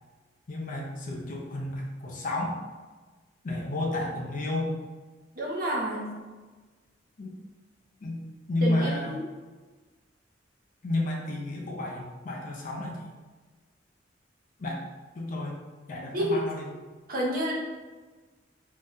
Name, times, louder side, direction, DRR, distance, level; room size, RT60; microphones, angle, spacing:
voice 1, 0.5-2.6 3.4-4.7 7.2-7.3 8.0-8.2 8.5-9.2 10.8-13.0 14.6-14.8 15.1-15.6 15.9-16.8, left 2 dB, 45° left, -1 dB, 0.4 m, -31 dB
voice 2, 5.4-6.0 8.6-9.2 16.1-16.4 17.1-17.5, right 1 dB, 45° right, -2 dB, 0.6 m, -29 dB
2.6 x 2.1 x 3.5 m, 1.3 s
head